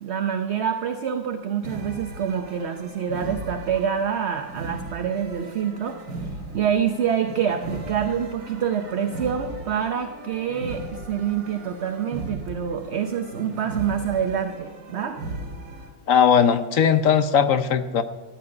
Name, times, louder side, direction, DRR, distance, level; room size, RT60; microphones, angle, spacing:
voice 1, 0.0-6.0 6.5-10.8 11.1-15.2, right 8 dB, 55° right, 7 dB, 0.8 m, -26 dB
sound 1, 1.6-15.9, right 2 dB, 90° right, 2.6 m, -37 dB
voice 2, 16.1-18.0, left 7 dB, 60° left, 11 dB, 1.0 m, -18 dB
13.5 x 7.8 x 9.6 m, 1.2 s
omnidirectional pair, 1.9 m